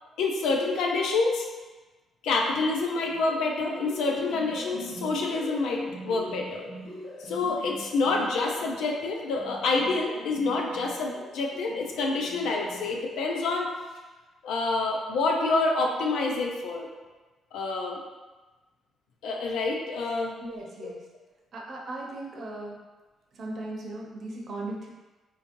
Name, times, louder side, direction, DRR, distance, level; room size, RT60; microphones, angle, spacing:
voice 1, 0.2-1.5 2.2-6.6 7.2-13.7 14.4-16.9 17.5-18.0 19.2-20.3 20.8-20.9, left 3 dB, 85° left, 0 dB, 0.4 m, -27 dB
sound 1, 3.0-13.5, left 2 dB, 60° left, 1.1 m, -42 dB
voice 2, 20.4-21.0 21.5-22.8 23.3-24.9, right 2 dB, 55° right, -3 dB, 0.8 m, -37 dB
3.8 x 2.9 x 2.6 m, 1.2 s
cardioid pair, 90°, 0 cm